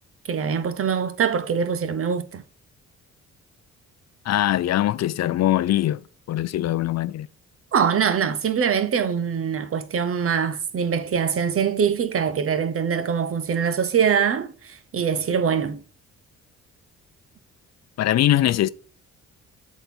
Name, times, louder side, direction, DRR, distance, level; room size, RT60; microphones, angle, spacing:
voice 1, 0.3-2.4 7.7-15.8, right 7 dB, 45° right, 1.1 m, -23 dB
voice 2, 4.3-6.0 6.3-7.3 18.0-18.7, left 13 dB, 60° left, 0.6 m, -22 dB
8.0 x 4.2 x 6.1 m
cardioid pair, 90°, 30 cm